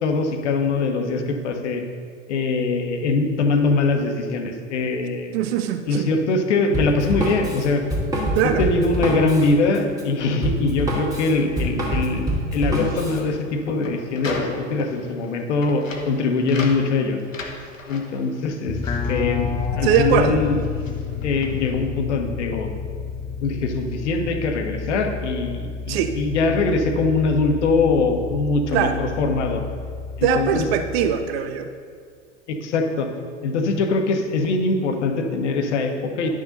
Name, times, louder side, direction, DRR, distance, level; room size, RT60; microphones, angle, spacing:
voice 1, 0.0-1.8 2.3-5.3 5.9-7.8 8.6-17.2 17.9-18.8 19.1-19.5 19.8-20.6 21.2-22.7 23.4-29.6 30.2-30.6 32.5-33.1 33.4-36.3, left 3 dB, 65° left, 5 dB, 1.2 m, -22 dB
voice 2, 5.3-6.1 8.3-8.7 19.8-20.4 25.9-26.2 28.7-29.0 30.2-31.7, right 8 dB, 55° right, 8 dB, 0.6 m, -21 dB
Drum kit, 6.7-13.2, right 1 dB, 10° right, 2.1 m, -25 dB
sound 1, 12.6-20.1 20.3-21.8, left 3 dB, 85° left, 1.1 m, -36 dB
sound 2, 18.7-31.1, left 5 dB, 10° left, 0.5 m, -30 dB
10.5 x 6.5 x 4.0 m, 2.1 s
figure-of-eight pair, 90°, 38 cm